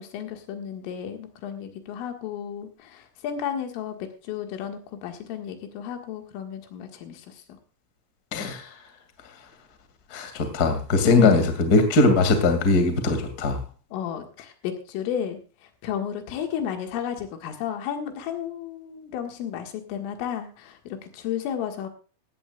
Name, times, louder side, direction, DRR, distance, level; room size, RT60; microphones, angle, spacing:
voice 1, 0.0-7.4 11.0-11.5 13.9-15.4 15.8-21.9, left 9 dB, 80° left, 5 dB, 4.2 m, -33 dB
voice 2, 8.3-8.6 10.1-13.6, left 3 dB, 40° left, 7 dB, 1.3 m, -20 dB
16.5 x 15.5 x 2.4 m, 0.35 s
omnidirectional pair, 5.7 m